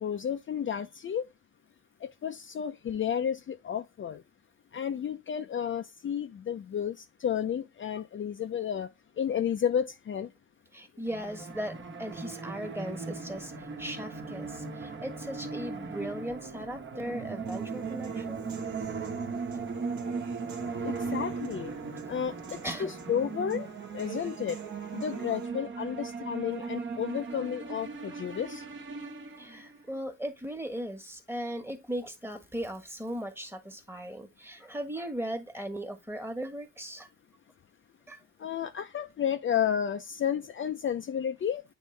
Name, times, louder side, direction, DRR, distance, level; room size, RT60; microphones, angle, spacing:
voice 1, 0.0-1.2 2.0-4.2 4.7-7.0 7.2-8.9 9.2-10.3 20.8-21.7 22.1-22.3 22.8-23.7 23.9-24.6 24.9-28.6 38.4-41.6, left 8 dB, 40° left, 0.6 m, -31 dB
voice 2, 10.7-11.7 12.0-13.5 13.8-18.4 22.6-22.9 29.4-37.1 38.1-38.2, equal, 10° right, 1.4 m, -38 dB
sound 1, 11.1-29.8, right 4 dB, 40° right, 1.3 m, -38 dB
Human voice / Piano, 17.5-25.5, right 5 dB, 75° right, 1.5 m, -48 dB
9.1 x 3.3 x 3.2 m
cardioid pair, 90°, 30 cm